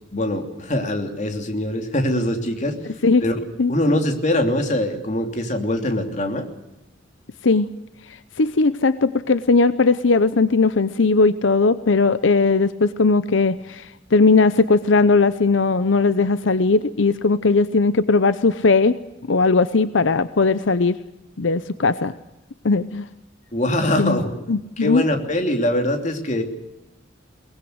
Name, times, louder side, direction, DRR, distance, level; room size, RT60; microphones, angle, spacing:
voice 1, 0.1-2.8 3.2-3.3 3.7-6.5 23.5-24.3 24.8-26.4, left 1 dB, 40° left, 5 dB, 3.0 m, -22 dB
voice 2, 8.4-19.0 19.3-21.0 21.4-22.1 22.6-23.0 24.0-24.2 24.5-25.0, left 3 dB, 80° left, 14 dB, 0.8 m, -18 dB
23.0 x 19.5 x 8.0 m, 0.94 s
head